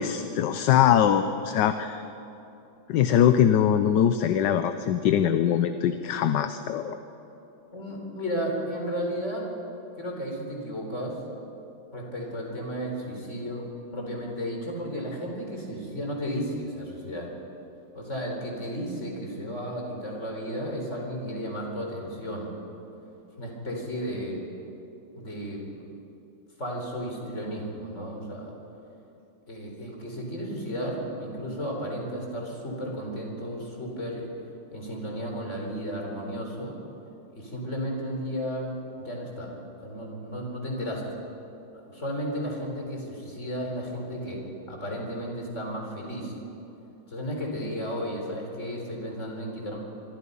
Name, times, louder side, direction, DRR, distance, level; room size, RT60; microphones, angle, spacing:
voice 1, 0.0-2.0 2.9-7.0, left 9 dB, 70° left, 10 dB, 1.3 m, -22 dB
voice 2, 7.7-9.5 10.0-11.2 11.9-17.3 17.9-22.5 23.4-24.5 25.2-25.8 26.6-28.5 29.5-34.3 34.7-36.8 37.3-38.7 39.0-39.5 39.8-41.0 41.7-46.3 47.1-49.8, equal, 35° left, 0 dB, 4.4 m, -33 dB
25.5 x 24.0 x 5.5 m, 3.0 s
omnidirectional pair, 2.1 m